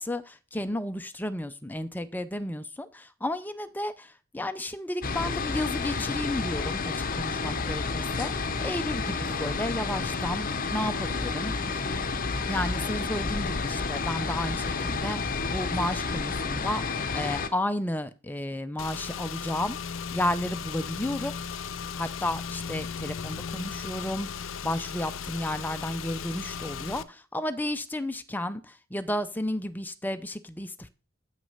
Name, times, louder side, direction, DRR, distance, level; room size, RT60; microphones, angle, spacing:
voice 1, 0.0-11.8 12.5-19.8 20.1-21.3 21.9-30.9, left 1 dB, 10° left, 10 dB, 0.5 m, -32 dB
sound 1, 5.0-17.5, left 4 dB, 45° left, 0.8 m, -30 dB
Car / Engine, 18.8-27.0, left 6 dB, 70° left, 0.5 m, -36 dB
8.3 x 6.2 x 5.5 m, 0.36 s
head